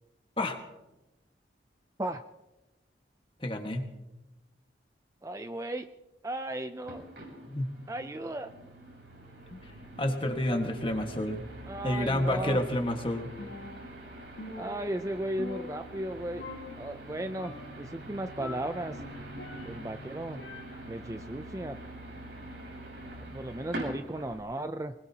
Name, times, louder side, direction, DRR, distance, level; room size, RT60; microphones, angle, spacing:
voice 1, 3.4-3.9 7.5-7.7 9.5-9.7 10.0-11.4 11.8-13.3, left 1 dB, 30° left, 4 dB, 1.6 m, -29 dB
voice 2, 5.2-5.9 6.2-7.1 7.9-8.5 11.7-12.6 14.5-16.4 16.8-19.0 19.6-20.4 20.9-21.8 23.2-24.9, right 1 dB, 15° right, 8 dB, 0.4 m, -35 dB
sound 1, 6.8-24.4, right 1 dB, 80° right, 7.1 m, -44 dB
Percussion, 13.4-14.1 14.4-16.1 16.4-17.1 17.4-17.9 18.4-20.0 20.4-21.1, left 2 dB, 85° left, 1.8 m, -45 dB
24.0 x 20.5 x 2.9 m, 1.0 s
head